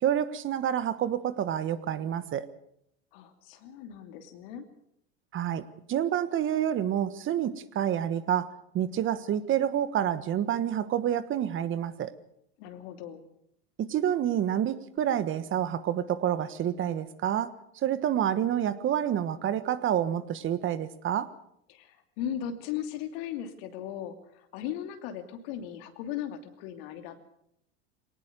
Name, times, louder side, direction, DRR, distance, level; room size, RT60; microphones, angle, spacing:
voice 1, 0.0-2.5 5.3-12.1 13.8-17.5 17.8-21.3, right 10 dB, 40° right, 14 dB, 1.4 m, -28 dB
voice 2, 3.1-4.6 12.6-13.2 21.7-27.2, left 10 dB, 70° left, 7 dB, 2.8 m, -37 dB
21.5 x 19.0 x 6.8 m, 0.72 s
hypercardioid pair, 95°, 31 cm